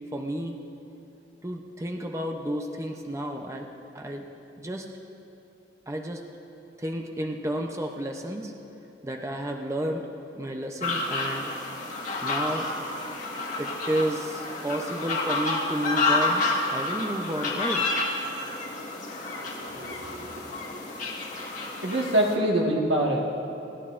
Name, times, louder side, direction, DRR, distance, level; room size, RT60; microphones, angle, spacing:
voice 1, 0.1-0.6 1.4-3.7 3.9-4.3 4.6-4.9 5.9-6.2 6.8-8.5 9.0-10.1 10.4-11.5 12.2-12.7 13.6-17.8, right 1 dB, 15° right, 2 dB, 0.6 m, -31 dB
sound 1, 10.8-22.4, left 2 dB, 45° left, 1.6 m, -30 dB
voice 2, 19.3-20.3 21.8-23.2, right 1 dB, 80° right, -1 dB, 1.6 m, -25 dB
27.5 x 11.5 x 2.5 m, 2.9 s
head